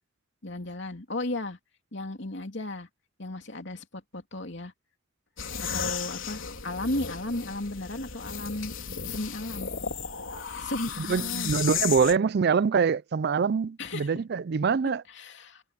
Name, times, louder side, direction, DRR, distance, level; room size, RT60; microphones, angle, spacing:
voice 1, 0.4-1.6 1.9-2.9 3.2-4.7 5.7-8.7 9.1-9.7 10.5-11.5 13.8-14.1 15.1-15.6, left 2 dB, 60° left, 3.0 m, -34 dB
sound 1, 5.4-12.2, left 7 dB, 80° left, 3.5 m, -35 dB
voice 2, 11.0-15.0, right 5 dB, 55° right, 0.4 m, -24 dB
head